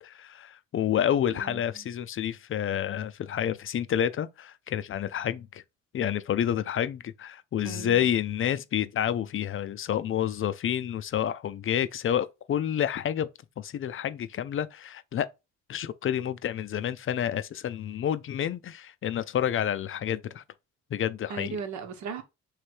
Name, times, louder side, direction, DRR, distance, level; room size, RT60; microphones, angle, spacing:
voice 1, 0.0-5.6 5.9-13.3 13.6-15.3 15.7-20.4 20.9-21.6, left 10 dB, 45° left, 0.5 m, -29 dB
voice 2, 1.3-1.9 7.6-8.1 21.3-22.2, right 6 dB, 70° right, 1.0 m, -37 dB
3.3 x 3.2 x 4.5 m
cardioid pair, 90°, 30 cm